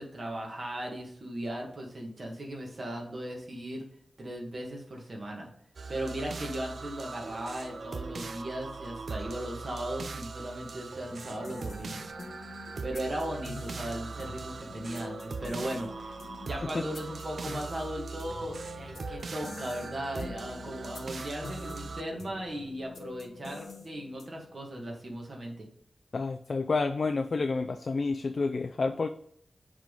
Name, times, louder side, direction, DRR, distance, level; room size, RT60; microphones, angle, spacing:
voice 1, 0.0-3.9 4.2-5.5 5.9-12.1 12.8-16.2 16.4-25.7, right 1 dB, 45° right, 0 dB, 1.7 m, -37 dB
sound 1, 5.8-22.0, right 4 dB, 65° right, 0.4 m, -40 dB
sound 2, 11.1-24.5, left 4 dB, 85° left, 0.9 m, -46 dB
voice 2, 26.1-29.1, left 4 dB, 55° left, 6 dB, 0.4 m, -29 dB
7.2 x 3.6 x 3.8 m, 0.69 s
wide cardioid pair, 125°, 0 cm